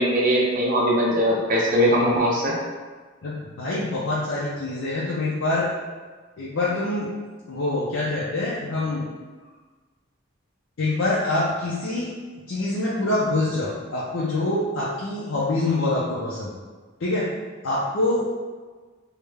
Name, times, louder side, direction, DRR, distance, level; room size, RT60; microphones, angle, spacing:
voice 1, 0.0-2.5, equal, 40° right, -4 dB, 0.5 m, -20 dB
voice 2, 3.2-5.7 6.4-7.1 7.5-9.0 10.8-12.1 12.5-16.5 17.0-17.3 17.6-18.3, left 2 dB, 70° left, -7 dB, 0.5 m, -25 dB
3.4 x 2.1 x 3.3 m, 1.4 s
head